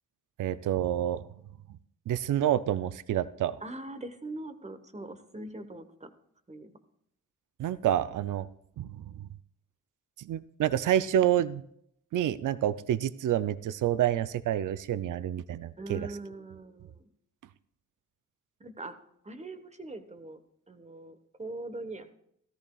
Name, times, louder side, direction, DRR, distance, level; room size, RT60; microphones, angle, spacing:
voice 1, 0.4-1.3 2.1-3.6 7.6-8.5 8.8-9.2 10.2-11.6 12.1-16.1, right 11 dB, 70° right, 15 dB, 0.5 m, -28 dB
voice 2, 3.6-6.1 6.5-6.7 15.8-17.0 18.6-19.0 19.2-20.4 20.7-22.1, right 2 dB, 20° right, 10 dB, 1.1 m, -41 dB
14.0 x 13.5 x 2.3 m, 0.72 s
cardioid pair, 70°, 32 cm